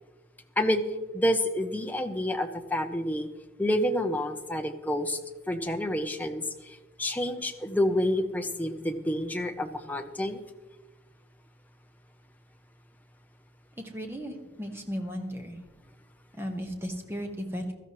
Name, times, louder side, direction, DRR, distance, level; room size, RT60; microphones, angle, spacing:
voice 1, 1.1-3.3 3.6-5.2 5.5-10.4, left 1 dB, 10° left, 5 dB, 0.7 m, -28 dB
voice 2, 13.8-15.6 16.3-17.7, equal, 10° right, 3 dB, 1.3 m, -35 dB
17.0 x 13.0 x 3.1 m, 1.2 s
head